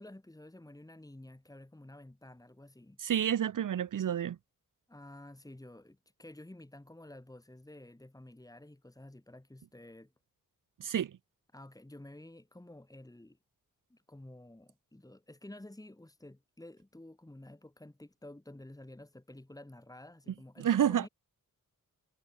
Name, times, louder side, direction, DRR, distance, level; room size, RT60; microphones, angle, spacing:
voice 1, 0.0-3.0 4.9-10.1 11.5-13.4 13.9-21.1, left 1 dB, 10° left, 6.0 m, -51 dB
voice 2, 3.0-4.4 10.8-11.1 20.6-21.1, right 9 dB, 70° right, 0.8 m, -29 dB
wide cardioid pair, 140°, 33 cm